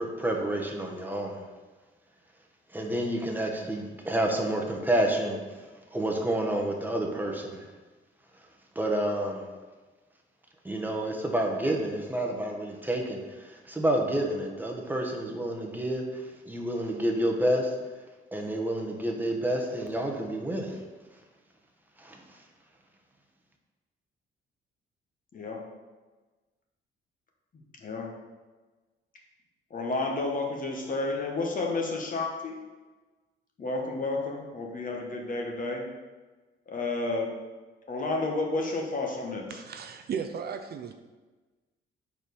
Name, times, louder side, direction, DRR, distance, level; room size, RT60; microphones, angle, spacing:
voice 1, 0.0-1.4 2.7-5.4 5.9-7.6 8.7-9.4 10.6-17.7 18.3-20.8 22.0-22.2, right 1 dB, 10° right, 0 dB, 1.1 m, -29 dB
voice 2, 25.3-25.6 27.8-28.1 29.7-32.6 33.6-35.8 36.7-37.3 37.9-39.6, left 3 dB, 45° left, 0 dB, 1.3 m, -31 dB
voice 3, 39.5-40.9, right 7 dB, 55° right, 7 dB, 0.5 m, -35 dB
4.7 x 4.3 x 5.3 m, 1.3 s
cardioid pair, 90°, 20 cm